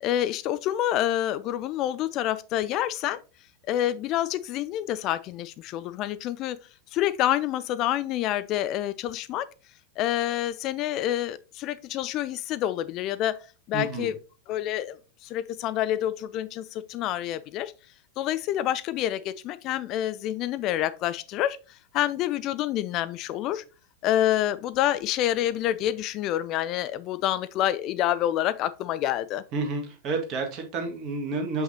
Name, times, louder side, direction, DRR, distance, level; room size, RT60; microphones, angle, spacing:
voice 1, 0.0-3.2 3.7-6.6 6.9-9.5 10.0-13.4 13.7-14.2 14.5-17.7 18.2-23.6 24.0-29.4, left 12 dB, 35° left, 0.3 m, -27 dB
voice 2, 13.7-14.1 29.5-31.6, right 3 dB, 35° right, 1.7 m, -30 dB
6.4 x 5.6 x 2.8 m
figure-of-eight pair, 90°, 0 cm